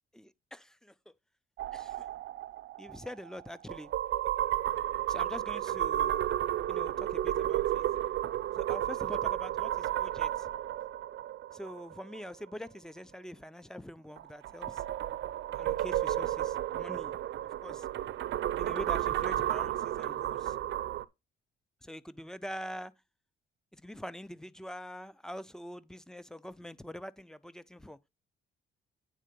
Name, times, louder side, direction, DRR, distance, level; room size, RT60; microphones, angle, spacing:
voice 1, 0.1-1.1 1.7-2.1 2.8-3.9 5.1-6.2 6.7-7.9 8.5-10.5 11.5-14.8 15.5-17.2 17.6-17.9 18.6-20.6 21.8-22.9 23.7-28.0, equal, 5° left, 0.6 m, -44 dB
sound 1, 1.6-12.2 14.2-21.0, right 12 dB, 70° right, 0.6 m, -32 dB
8.9 x 3.7 x 6.8 m
cardioid pair, 90°, 20 cm